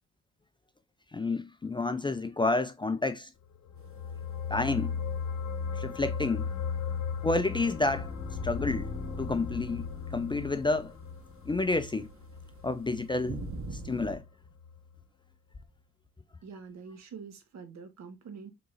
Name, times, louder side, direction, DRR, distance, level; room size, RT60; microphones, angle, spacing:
voice 1, 1.1-3.3 4.5-4.9 5.7-6.5 7.2-8.1 8.4-8.9 9.2-9.8 10.1-10.9 11.5-12.1 12.6-13.5 13.8-14.2, left 3 dB, 15° left, 0.4 m, -29 dB
sound 1, 3.5-14.3 14.6-14.8, left 6 dB, 65° left, 0.9 m, -37 dB
sound 2, 3.8-14.2, right 2 dB, 45° right, 1.0 m, -48 dB
sound 3, 7.2-12.2, left 4 dB, 40° left, 1.2 m, -41 dB
voice 2, 16.4-18.5, right 5 dB, 65° right, 1.3 m, -45 dB
4.6 x 3.8 x 2.5 m
cardioid pair, 90°, 30 cm